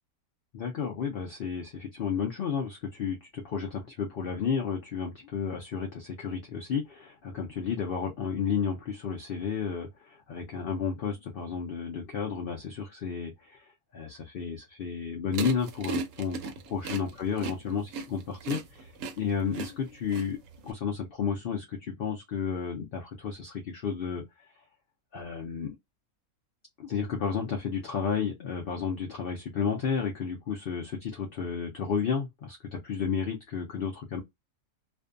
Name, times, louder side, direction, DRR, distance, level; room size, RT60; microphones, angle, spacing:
voice 1, 0.5-18.9 19.2-20.4 20.6-24.2 25.1-25.8 26.8-34.2, left 6 dB, 65° left, 0.5 m, -32 dB
sound 1, 15.3-20.7, right 4 dB, 70° right, 0.9 m, -36 dB
2.5 x 2.2 x 2.4 m
omnidirectional pair, 1.5 m